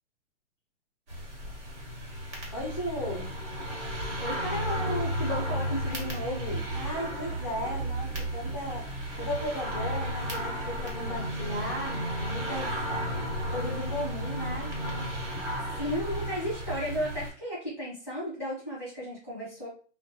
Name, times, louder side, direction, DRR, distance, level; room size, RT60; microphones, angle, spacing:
sound 1, 1.1-17.3, equal, 70° right, 1.2 m, -33 dB
voice 1, 2.5-3.3 6.7-8.9 9.2-12.7 13.5-14.7, equal, 30° left, -3 dB, 0.3 m, -36 dB
voice 2, 4.2-6.7 15.8-19.7, equal, 5° right, -9 dB, 0.9 m, -34 dB
2.3 x 2.2 x 2.6 m, 0.38 s
hypercardioid pair, 155°, 37 cm